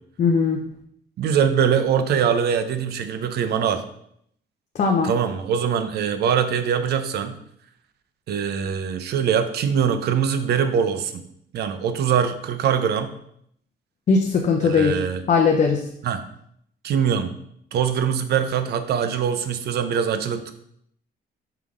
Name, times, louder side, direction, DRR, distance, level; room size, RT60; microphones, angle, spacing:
voice 1, 0.2-0.6 4.8-5.1 14.1-15.0 15.3-15.8, left 5 dB, 45° left, 2 dB, 0.7 m, -19 dB
voice 2, 1.2-3.8 5.0-7.4 8.3-11.3 11.5-13.1 14.6-15.2 16.0-16.2 16.8-17.3 17.7-20.5, right 7 dB, 70° right, 9 dB, 0.7 m, -23 dB
5.8 x 3.6 x 4.8 m, 0.70 s
cardioid pair, 125°, 18 cm